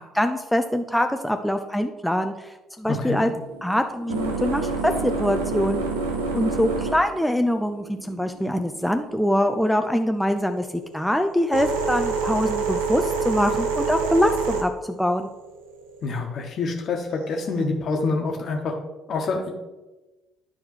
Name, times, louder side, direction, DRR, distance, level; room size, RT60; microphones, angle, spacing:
voice 1, 0.0-3.3 3.6-5.8 6.3-10.7 10.9-15.3, equal, ahead, 6 dB, 0.5 m, -24 dB
voice 2, 2.9-3.3 16.0-18.7 19.1-19.5, left 3 dB, 50° left, 3 dB, 1.3 m, -26 dB
sound 1, 3.3-9.6 10.4-16.2 17.1-17.6, right 4 dB, 75° right, 0.7 m, -28 dB
11.5 x 4.6 x 3.2 m, 1.1 s
figure-of-eight pair, 50°, 0 cm